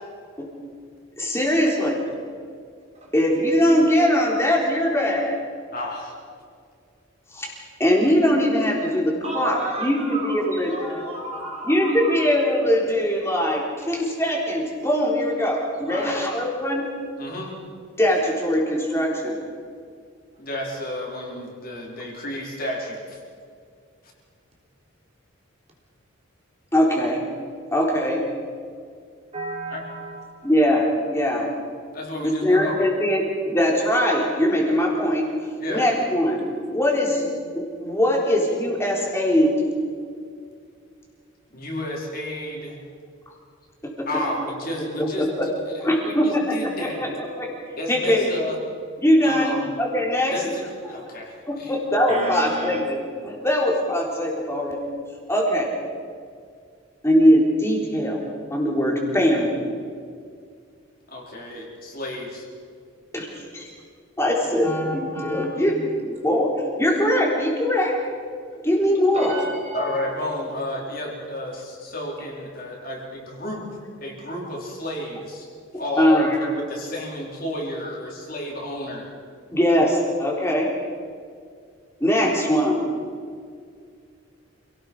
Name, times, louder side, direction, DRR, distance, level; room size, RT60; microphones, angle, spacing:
voice 1, 1.2-2.0 3.1-5.4 7.3-7.5 7.8-16.9 18.0-19.4 26.7-27.2 27.7-28.2 30.4-31.5 32.2-35.2 35.7-36.4 36.7-39.5 43.8-44.1 45.0-45.5 45.8-47.5 47.9-48.2 49.0-50.3 51.5-54.8 55.3-55.7 57.0-58.2 58.5-59.6 63.1-63.7 64.2-66.5 66.8-67.9 68.6-69.3 76.0-76.4 79.5-80.7 82.0-82.9, equal, 10° left, -2 dB, 3.9 m, -21 dB
voice 2, 5.7-6.1 15.9-16.2 17.2-17.5 20.4-23.2 29.7-29.8 31.9-33.0 35.6-35.9 41.5-42.8 44.1-45.5 45.8-47.1 47.8-48.6 49.2-49.7 50.3-51.8 61.1-62.4 69.7-73.7 74.0-75.5 75.8-79.1, left 1 dB, 45° left, -2 dB, 4.6 m, -31 dB
voice 3, 9.2-12.2 29.3-30.5 52.1-52.8 69.1-70.0, right 2 dB, 30° right, -1 dB, 3.8 m, -33 dB
28.0 x 18.0 x 5.6 m, 2.2 s
head